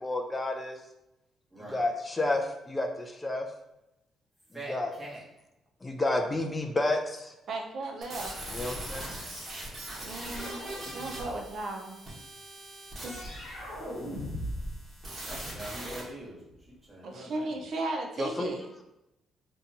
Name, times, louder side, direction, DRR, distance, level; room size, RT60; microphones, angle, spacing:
voice 1, 0.0-0.8 1.7-3.5 4.7-5.0 5.8-7.3 8.5-9.0 18.2-18.5, left 2 dB, 20° left, 4 dB, 0.3 m, -30 dB
voice 2, 4.5-5.2 10.0-10.5 15.2-16.4 16.7-17.6, right 1 dB, 15° right, -6 dB, 1.2 m, -44 dB
voice 3, 7.5-8.3 10.0-12.0 13.0-13.1 17.0-18.6, right 2 dB, 60° right, 2 dB, 0.5 m, -35 dB
sound 1, 8.0-16.0, right 1 dB, 35° right, 1.0 m, -41 dB
sound 2, 10.2-11.5 13.1-14.8 15.0-16.7, equal, 75° left, 1.0 m, -40 dB
2.6 x 2.2 x 2.7 m, 0.88 s
cardioid pair, 80°, 0 cm